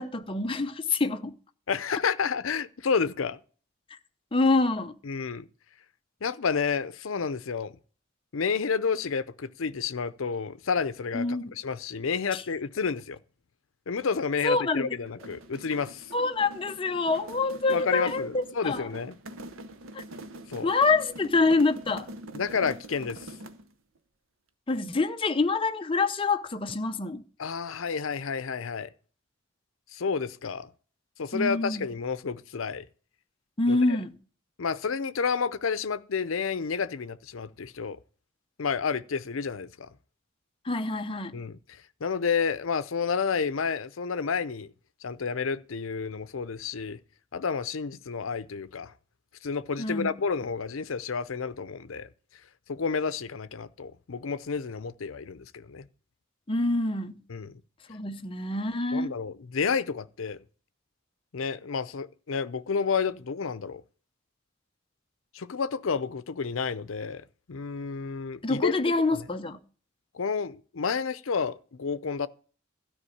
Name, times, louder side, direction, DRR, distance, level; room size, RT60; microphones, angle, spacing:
voice 1, 0.0-1.4 4.3-5.0 11.1-11.6 12.3-12.4 14.4-14.9 16.1-18.9 19.9-20.0 20.6-22.1 24.7-27.2 31.3-31.9 33.6-34.2 40.6-41.4 49.8-50.2 56.5-57.2 57.9-59.1 68.4-69.6, left 3 dB, 25° left, 0.6 m, -26 dB
voice 2, 1.7-3.4 5.0-5.5 6.2-7.7 8.3-13.2 13.9-16.1 17.7-19.1 20.5-20.7 22.3-23.3 27.4-28.9 29.9-30.7 31.2-32.8 33.7-34.0 34.6-38.0 38.6-39.9 41.3-44.7 45.0-47.0 47.3-48.9 49.4-52.1 52.7-55.9 57.3-57.6 58.9-60.4 61.3-63.8 65.3-68.8 69.1-69.2 70.1-72.3, left 5 dB, 80° left, 0.6 m, -30 dB
sound 1, 15.0-23.7, right 1 dB, 85° right, 0.9 m, -44 dB
13.0 x 5.0 x 8.5 m
head